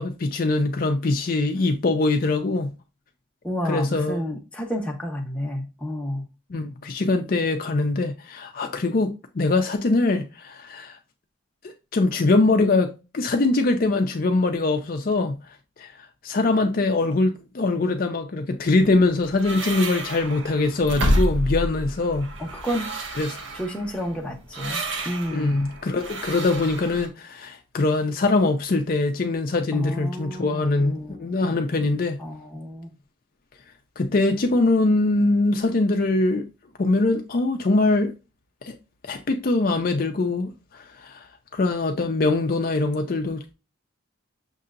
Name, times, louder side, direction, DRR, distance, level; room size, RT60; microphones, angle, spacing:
voice 1, 0.0-2.7 3.6-4.2 6.5-11.0 11.6-15.4 15.8-15.9 16.2-22.3 23.2-23.4 25.3-32.2 34.0-36.5 36.8-38.1 38.6-38.7 39.0-41.2 41.5-43.5, left 2 dB, 45° left, 0.4 m, -23 dB
voice 2, 3.4-6.2 22.4-22.9 23.5-25.6 29.7-31.7 32.2-32.9, equal, 5° left, 0.8 m, -31 dB
sound 1, 18.8-27.1, equal, 65° right, 1.0 m, -29 dB
6.5 x 2.7 x 2.5 m
head